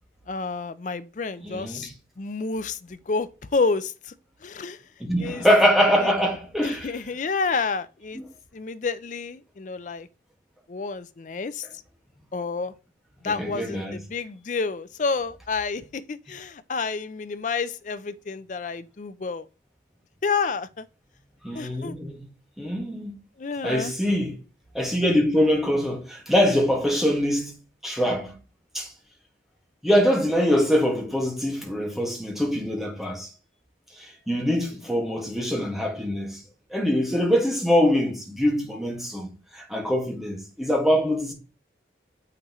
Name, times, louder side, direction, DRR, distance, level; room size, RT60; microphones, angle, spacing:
voice 1, 0.3-1.9 2.2-3.9 4.4-4.8 5.2-5.4 6.6-8.2 8.5-10.1 10.7-11.7 12.3-12.7 13.2-19.5 20.2-20.9 21.5-21.9 23.4-23.9, left 4 dB, 45° left, 0.5 m, -29 dB
voice 2, 1.4-1.9 5.0-7.0 8.2-8.3 13.3-14.0 21.4-22.3 22.6-23.2 23.6-24.4 24.7-27.6 27.8-28.4 28.7-28.9 29.8-33.3 33.9-36.4 36.7-41.3, equal, ahead, 1.7 m, -23 dB
7.8 x 5.8 x 3.1 m
head